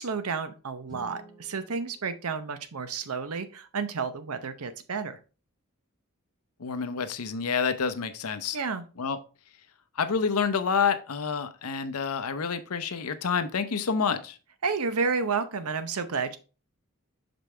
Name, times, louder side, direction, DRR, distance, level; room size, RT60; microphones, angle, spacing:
voice 1, 0.0-5.2 8.5-8.8 14.6-16.4, right 5 dB, 75° right, 11 dB, 0.7 m, -31 dB
Guitar, 0.9-3.4, right 2 dB, 20° right, 2.5 m, -53 dB
voice 2, 6.6-8.6 9.0-9.2 10.0-14.4, left 6 dB, 80° left, 10 dB, 0.7 m, -28 dB
6.0 x 5.3 x 3.3 m, 0.35 s
head